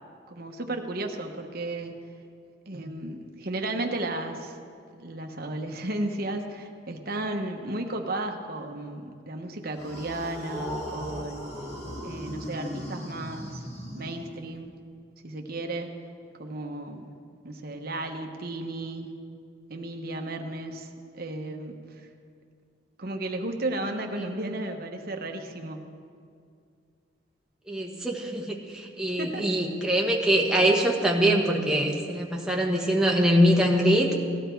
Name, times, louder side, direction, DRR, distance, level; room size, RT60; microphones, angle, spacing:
voice 1, 0.3-1.9 2.7-4.6 5.0-11.5 12.0-13.6 13.9-14.7 15.2-15.9 16.4-17.1 17.4-19.1 19.7-20.9 21.1-22.1 23.0-25.9 29.2-29.4, right 2 dB, 50° right, 4 dB, 1.1 m, -34 dB
sound 1, 9.7-14.6, equal, 30° left, 2.1 m, -37 dB
voice 2, 27.7-34.1, equal, 5° right, -1 dB, 1.3 m, -23 dB
17.0 x 12.5 x 4.6 m, 2.3 s
head